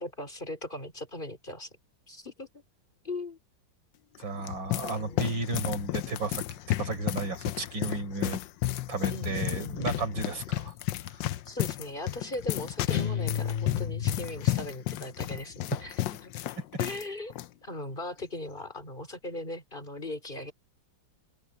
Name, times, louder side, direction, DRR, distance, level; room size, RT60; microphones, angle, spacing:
voice 1, 0.0-1.7 2.1-2.6 3.0-3.4 4.8-5.3 9.1-10.1 11.4-16.3 16.8-17.3 17.6-20.5, left 1 dB, 25° left, 4.3 m, -39 dB
sound 1, 4.1-17.0 17.3-17.5 18.2-18.5, left 15 dB, 75° left, 1.3 m, -32 dB
voice 2, 4.2-8.4 8.9-10.7 11.1-11.2 15.7-15.8, right 3 dB, 75° right, 5.1 m, -33 dB
sound 2, 12.9-14.6, left 7 dB, 55° left, 0.4 m, -32 dB
open air
omnidirectional pair, 2.1 m